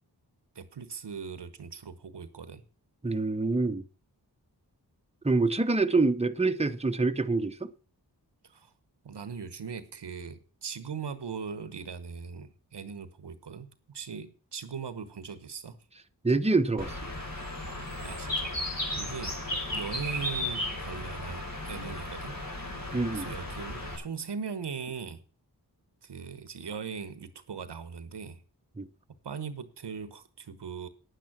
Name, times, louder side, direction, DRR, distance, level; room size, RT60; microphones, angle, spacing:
voice 1, 0.5-2.6 8.4-8.7 9.0-15.8 18.0-18.5 19.0-19.4 19.7-22.4 23.1-25.2 26.0-28.4 29.2-30.9, right 6 dB, 85° right, 1.1 m, -39 dB
voice 2, 3.0-3.8 5.2-7.7 16.2-17.0 22.9-23.3 28.8-28.9, right 3 dB, 15° right, 1.0 m, -26 dB
Bird, 16.8-24.0, left 1 dB, 55° left, 4.3 m, -35 dB
9.6 x 9.1 x 6.0 m
cardioid pair, 40°, 41 cm